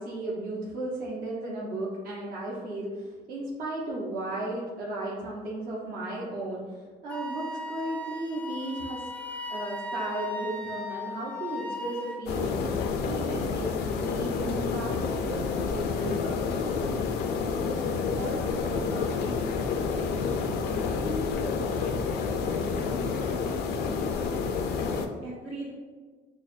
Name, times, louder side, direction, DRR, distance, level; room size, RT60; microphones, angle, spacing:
voice 1, 0.0-9.0 9.5-16.4, right 1 dB, 65° right, -6 dB, 0.8 m, -35 dB
Wind instrument woodwind instrument, 7.1-12.2, left 1 dB, 10° left, 0.3 m, -37 dB
sound 1, 12.3-25.1, left 5 dB, 75° left, 0.4 m, -29 dB
voice 2, 18.1-20.4 20.7-25.7, equal, 90° right, -4 dB, 1.3 m, -40 dB
6.1 x 2.1 x 2.5 m, 1.4 s
cardioid pair, 110°, 17 cm